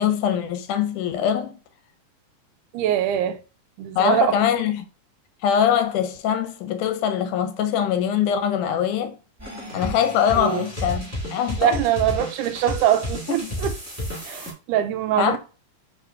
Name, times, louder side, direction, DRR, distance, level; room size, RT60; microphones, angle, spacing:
voice 1, 0.0-1.6 4.0-4.9 5.4-9.2 9.7-11.8 13.3-13.5 15.2-15.4, left 8 dB, 80° left, 2.0 m, -23 dB
voice 2, 2.7-3.4 3.8-4.4 10.4-10.7 11.6-13.7 14.2-15.4, right 11 dB, 80° right, 2.0 m, -23 dB
sound 1, 9.4-14.5, equal, 10° right, 0.8 m, -32 dB
4.7 x 4.2 x 2.6 m
omnidirectional pair, 3.6 m